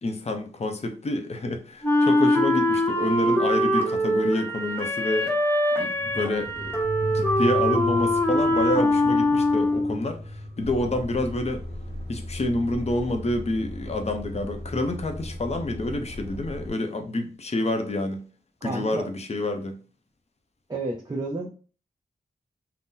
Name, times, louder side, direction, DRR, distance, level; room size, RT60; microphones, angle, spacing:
voice 1, 0.0-5.3 5.8-11.6 12.1-18.2 18.6-19.8, left 2 dB, 40° left, 0.6 m, -28 dB
Wind instrument woodwind instrument, 1.8-10.0, left 1 dB, 10° left, 0.8 m, -23 dB
sound 1, 5.9-15.0 15.4-15.5, left 1 dB, 80° right, 0.9 m, -37 dB
Truck, 10.6-16.7, left 1 dB, 80° left, 0.8 m, -37 dB
voice 2, 18.6-19.1 20.7-21.5, right 2 dB, 25° right, 0.5 m, -31 dB
2.7 x 2.0 x 3.7 m
wide cardioid pair, 105°, 17 cm